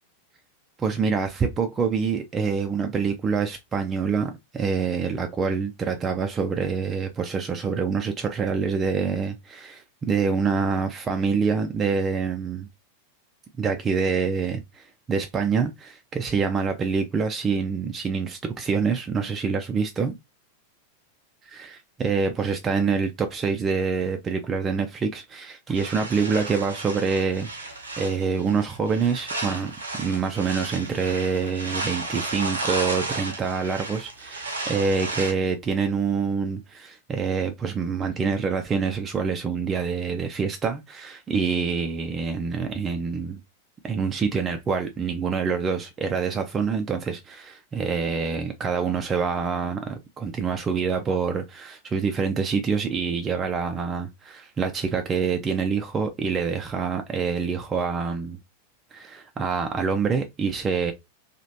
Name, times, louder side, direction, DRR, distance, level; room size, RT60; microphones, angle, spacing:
voice 1, 0.8-12.7 13.6-20.2 21.4-43.4 43.8-58.4 58.9-60.9, right 5 dB, 20° right, 0.4 m, -26 dB
sound 1, 25.7-35.3, right 2 dB, 75° right, 0.7 m, -33 dB
3.0 x 2.4 x 2.7 m
figure-of-eight pair, 90°, 0 cm